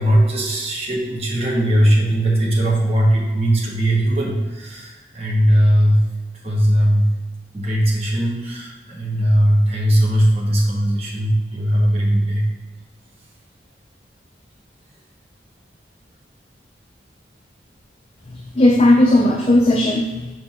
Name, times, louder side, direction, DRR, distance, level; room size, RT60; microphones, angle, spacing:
voice 1, 0.0-6.0 6.4-7.1 7.5-12.4, equal, 35° right, -4 dB, 1.2 m, -18 dB
voice 2, 18.3-20.3, left 1 dB, 30° left, 0 dB, 0.5 m, -16 dB
6.2 x 4.6 x 3.6 m, 1.2 s
head